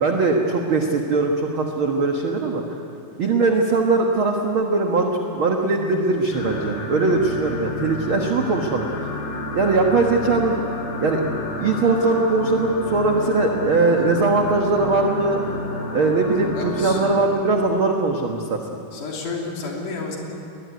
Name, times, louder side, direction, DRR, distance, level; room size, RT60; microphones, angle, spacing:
voice 1, 0.0-2.6 3.2-9.1 9.5-10.6 11.0-11.2 11.6-15.6 15.9-18.6, right 3 dB, 50° right, 2 dB, 1.7 m, -20 dB
sound 1, 6.3-17.2, left 1 dB, 45° left, 6.2 m, -30 dB
voice 2, 16.5-17.1 18.9-20.2, left 4 dB, 65° left, -1 dB, 4.6 m, -31 dB
21.5 x 20.5 x 9.5 m, 2.7 s
omnidirectional pair, 3.9 m